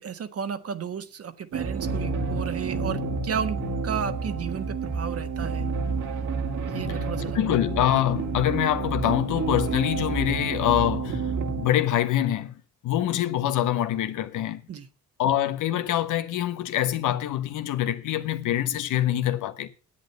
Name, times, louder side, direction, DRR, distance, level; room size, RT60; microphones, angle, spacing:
voice 1, 0.0-3.6 3.8-5.7 6.7-7.4 14.7-14.9, right 7 dB, 50° right, 1.5 m, -33 dB
sound 1, 1.5-11.7, right 4 dB, 70° right, 2.2 m, -29 dB
voice 2, 7.3-11.3 11.6-12.5 12.8-14.6 15.2-19.7, left 12 dB, 85° left, 1.3 m, -25 dB
10.0 x 8.6 x 6.8 m
cardioid pair, 90°, 30 cm